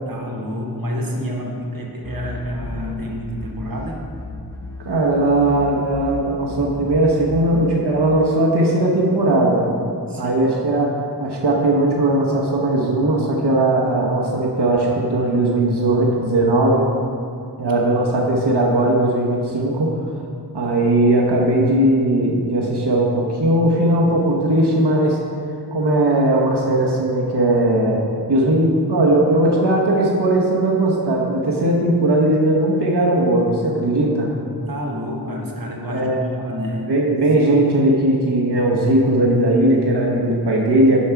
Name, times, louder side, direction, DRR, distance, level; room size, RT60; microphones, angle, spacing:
voice 1, 0.1-4.0 10.1-10.6 17.6-17.8 34.7-37.0, equal, 60° right, -1 dB, 1.2 m, -29 dB
sound 1, 2.0-5.1 5.4-7.9, left 1 dB, 5° left, 0.9 m, -34 dB
voice 2, 4.8-9.7 10.2-10.9 11.2-16.9 17.6-19.9 20.5-25.2 25.7-28.0 28.3-34.3 35.9-36.3 36.9-41.0, right 1 dB, 85° right, -2 dB, 1.0 m, -18 dB
7.1 x 5.6 x 4.6 m, 2.5 s
wide cardioid pair, 55°, 39 cm